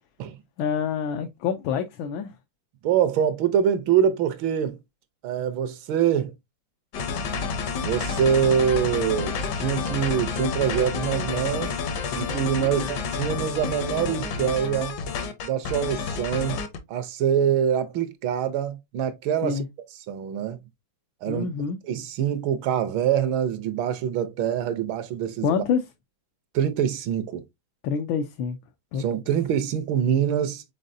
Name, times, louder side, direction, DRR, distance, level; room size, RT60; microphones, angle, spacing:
voice 1, 0.6-2.3 12.6-12.9 19.4-19.6 21.3-21.8 25.4-25.8 27.8-28.6 28.9-29.0, left 6 dB, 85° left, 1.4 m, -27 dB
voice 2, 2.8-4.8 5.2-6.3 7.8-11.8 12.1-15.0 15.4-16.6 16.9-19.6 20.1-20.6 21.2-21.5 21.8-25.6 26.5-27.4 29.0-30.6, right 9 dB, 80° right, 1.5 m, -24 dB
sound 1, 6.9-16.8, left 5 dB, 65° left, 1.4 m, -29 dB
5.2 x 3.9 x 2.6 m
omnidirectional pair, 2.2 m